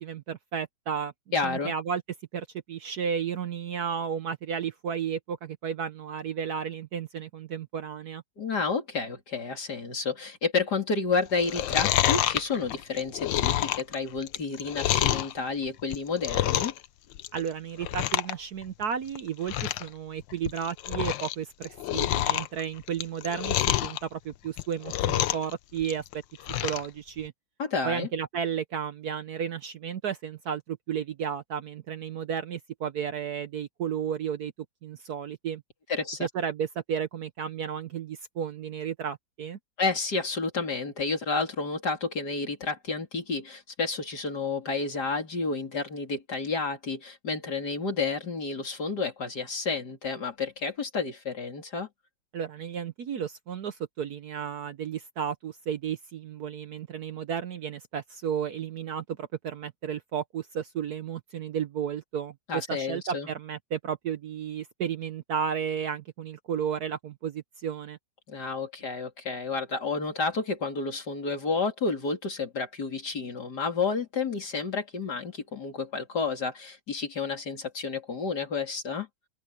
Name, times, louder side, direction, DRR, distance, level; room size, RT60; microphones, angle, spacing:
voice 1, 0.0-1.1 1.4-2.0 2.3-8.2 17.3-26.0 26.6-27.3 27.8-34.5 34.8-35.6 36.2-39.6 52.3-68.0, right 8 dB, 60° right, 1.2 m, -33 dB
voice 2, 1.3-1.7 8.4-16.7 27.6-28.1 35.9-36.3 39.8-51.9 62.5-63.3 68.3-79.1, left 4 dB, 55° left, 3.6 m, -30 dB
Chewing mastication, 11.3-15.3 15.8-16.9 17.1-17.5 17.8-18.3 18.6-18.7 19.2-19.3 19.5-19.9 20.3-21.3 21.6-24.0 24.5-25.5 25.8-26.9 27.3-27.4, left 13 dB, 75° left, 1.4 m, -27 dB
open air
omnidirectional pair, 2.2 m